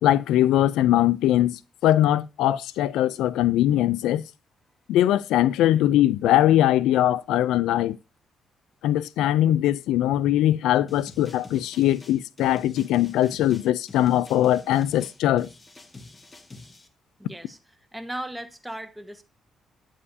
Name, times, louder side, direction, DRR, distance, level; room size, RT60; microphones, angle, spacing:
voice 1, 0.0-4.2 4.9-8.0 8.8-15.5, left 13 dB, 90° left, 0.3 m, -21 dB
sound 1, 10.9-16.9, left 3 dB, 25° left, 1.2 m, -47 dB
voice 2, 17.2-17.6 17.9-19.2, right 1 dB, 5° right, 1.3 m, -36 dB
9.7 x 7.4 x 2.7 m
cardioid pair, 90°, 0 cm